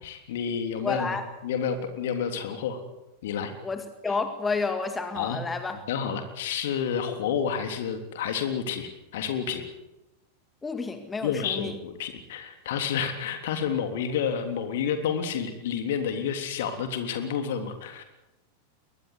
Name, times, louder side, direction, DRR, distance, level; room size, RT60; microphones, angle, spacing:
voice 1, 0.0-2.8 3.2-3.5 5.1-5.4 5.9-9.6 11.2-18.0, left 7 dB, 55° left, 7 dB, 3.3 m, -30 dB
voice 2, 0.8-1.3 3.6-5.8 10.6-11.7, left 4 dB, 15° left, 8 dB, 2.0 m, -30 dB
23.0 x 19.5 x 8.3 m, 0.96 s
figure-of-eight pair, 90°, 0 cm